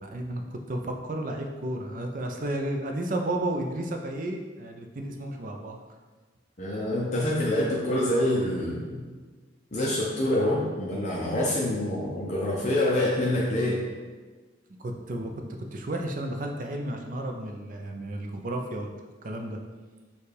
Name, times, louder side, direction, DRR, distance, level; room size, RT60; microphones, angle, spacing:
voice 1, 0.0-5.8 14.8-15.3 15.7-18.9 19.2-19.6, right 1 dB, 45° right, 3 dB, 0.5 m, -32 dB
voice 2, 6.6-9.0 9.7-13.8, left 1 dB, 40° left, -4 dB, 0.6 m, -26 dB
6.7 x 2.4 x 3.3 m, 1.4 s
head